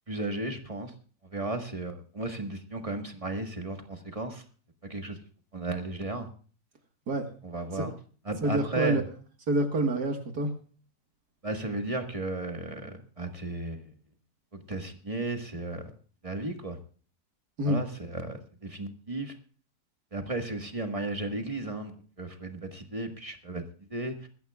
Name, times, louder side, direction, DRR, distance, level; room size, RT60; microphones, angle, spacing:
voice 1, 0.1-0.9 1.2-4.4 4.8-5.2 5.5-6.3 7.4-7.9 8.2-9.0 11.4-13.9 14.5-15.9 16.2-16.8 17.6-19.3 20.1-23.6 23.9-24.3, right 2 dB, 20° right, 4 dB, 1.6 m, -34 dB
voice 2, 8.4-9.0 9.5-10.5 17.6-17.8, right 1 dB, 75° right, 4 dB, 2.2 m, -27 dB
21.5 x 14.5 x 2.4 m, 0.41 s
omnidirectional pair, 1.7 m